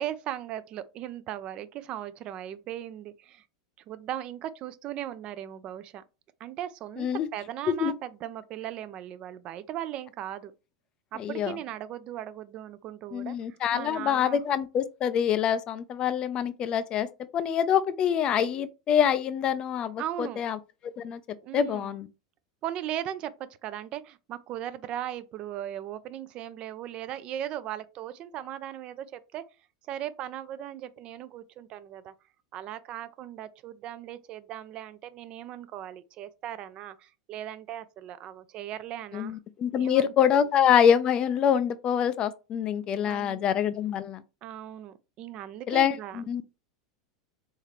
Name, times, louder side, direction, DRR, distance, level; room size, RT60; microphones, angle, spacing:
voice 1, 0.0-3.4 3.9-6.0 6.4-10.5 11.1-14.4 20.0-20.5 21.4-21.9 22.6-29.4 29.9-32.1 32.5-39.4 39.8-40.4 43.0-43.4 44.4-46.2, right 11 dB, 40° right, 0.4 m, -38 dB
voice 2, 7.0-7.3 7.8-7.9 11.2-11.5 13.1-17.1 17.3-20.6 21.0-21.2 21.5-22.1 39.1-44.2 45.7-46.4, left 8 dB, 35° left, 0.4 m, -25 dB
4.4 x 3.5 x 3.1 m
figure-of-eight pair, 85°, 3 cm